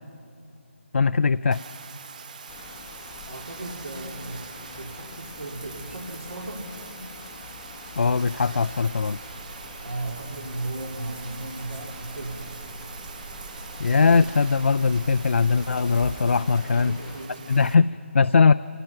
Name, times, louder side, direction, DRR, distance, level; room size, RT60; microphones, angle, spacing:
voice 1, 0.9-1.6 8.0-9.2 13.8-17.0 17.5-18.5, left 5 dB, 65° left, 12 dB, 0.4 m, -20 dB
Bathtub (filling or washing), 1.5-17.7, right 5 dB, 35° right, 1.0 m, -43 dB
sound 1, 2.5-17.3, left 7 dB, 15° left, 0.6 m, -46 dB
voice 2, 3.3-4.5 4.8-6.7 9.8-12.6 16.5-17.6, right 2 dB, 85° right, 0 dB, 3.5 m, -36 dB
sound 2, 8.2-16.3, right 4 dB, 60° right, 5.8 m, -44 dB
25.5 x 18.5 x 5.8 m, 2.7 s
figure-of-eight pair, 160°, 7 cm